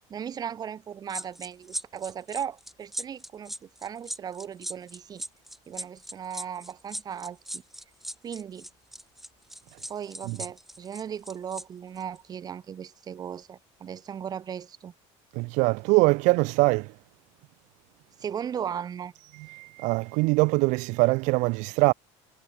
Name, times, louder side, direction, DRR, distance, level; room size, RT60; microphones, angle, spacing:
voice 1, 0.1-5.2 5.7-7.6 8.2-8.7 9.9-14.9 18.2-19.1, right 8 dB, 30° right, 4.2 m, -37 dB
sound 1, 1.1-11.6 12.0-12.2, equal, ahead, 4.2 m, -38 dB
voice 2, 15.3-16.9 19.5-21.9, right 26 dB, 65° right, 0.9 m, -23 dB
cardioid pair, 155°, 13 cm